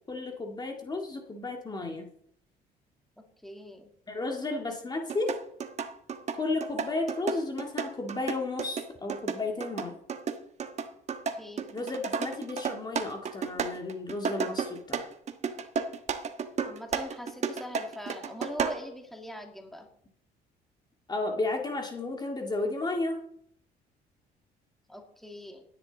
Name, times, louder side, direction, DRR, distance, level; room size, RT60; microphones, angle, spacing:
voice 1, 0.1-2.1 4.1-5.4 6.4-10.0 11.7-15.1 21.1-23.2, left 2 dB, 25° left, 2 dB, 2.0 m, -33 dB
voice 2, 3.4-3.9 11.4-11.9 16.6-19.9 24.9-25.7, equal, ahead, 2 dB, 2.4 m, -42 dB
sound 1, 5.1-18.9, right 6 dB, 40° right, 1.3 m, -33 dB
17.0 x 10.5 x 4.0 m, 0.68 s
cardioid pair, 110°, 17 cm